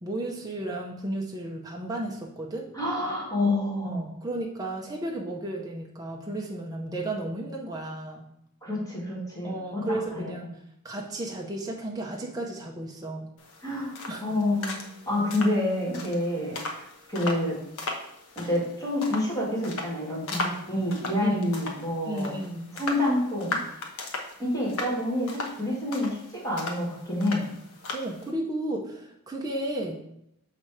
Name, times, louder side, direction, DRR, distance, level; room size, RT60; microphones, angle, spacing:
voice 1, 0.0-2.7 3.8-8.3 9.4-10.5 10.8-13.3 14.1-14.2 21.2-21.6 22.1-22.8 27.9-30.0, right 1 dB, 15° right, -1 dB, 0.6 m, -33 dB
voice 2, 2.7-4.1 8.6-10.3 13.6-13.9 14.2-17.6 18.4-22.3 22.7-23.6 24.4-27.5, left 1 dB, 15° left, -6 dB, 1.9 m, -28 dB
sound 1, 13.4-28.3, left 2 dB, 65° left, 1.0 m, -38 dB
6.7 x 3.2 x 4.8 m, 0.79 s
head